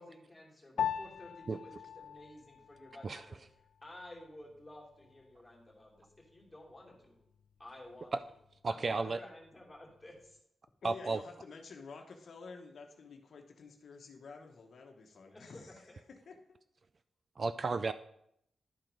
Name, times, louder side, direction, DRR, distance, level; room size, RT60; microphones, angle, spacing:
voice 1, 0.0-3.4 3.8-7.2 7.6-8.1 8.7-10.4 15.3-15.6, left 1 dB, 10° left, -3 dB, 2.7 m, -53 dB
Piano, 0.8-10.4, left 9 dB, 85° left, 0.3 m, -44 dB
voice 2, 8.6-9.2 10.8-11.2 17.4-17.9, right 3 dB, 40° right, 12 dB, 0.3 m, -33 dB
voice 3, 10.8-16.4, left 4 dB, 65° left, 3 dB, 1.1 m, -50 dB
11.0 x 4.5 x 5.2 m, 0.74 s
wide cardioid pair, 140°, 0 cm